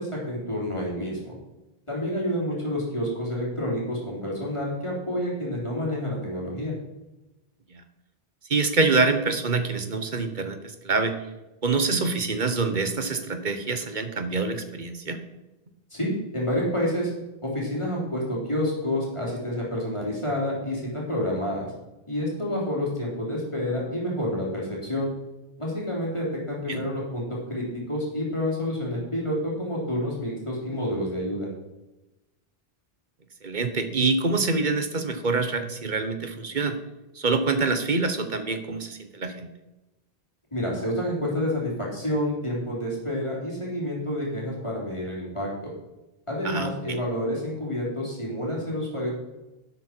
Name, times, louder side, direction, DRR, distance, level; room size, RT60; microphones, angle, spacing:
voice 1, 0.0-1.3 1.9-6.8 15.9-17.1 17.4-21.7 22.1-25.1 25.6-31.5 40.5-45.7 46.3-49.2, left 1 dB, 30° left, -4 dB, 3.6 m, -29 dB
voice 2, 8.5-10.6 10.8-11.1 11.6-15.2 26.7-26.8 33.4-36.8 37.1-39.5 46.4-47.0, right 3 dB, 50° right, 8 dB, 1.2 m, -25 dB
11.5 x 8.2 x 4.5 m, 1.0 s
omnidirectional pair, 1.0 m